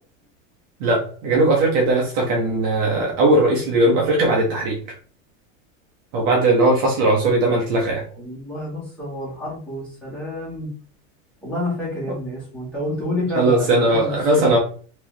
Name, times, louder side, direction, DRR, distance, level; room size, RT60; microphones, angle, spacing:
voice 1, 0.8-4.8 6.1-8.0 13.3-14.6, right 2 dB, 35° right, -2 dB, 1.0 m, -18 dB
voice 2, 8.1-10.7 11.4-14.5, left 1 dB, 5° left, -7 dB, 1.6 m, -29 dB
4.5 x 3.0 x 3.3 m, 0.42 s
supercardioid pair, 175°, 38 cm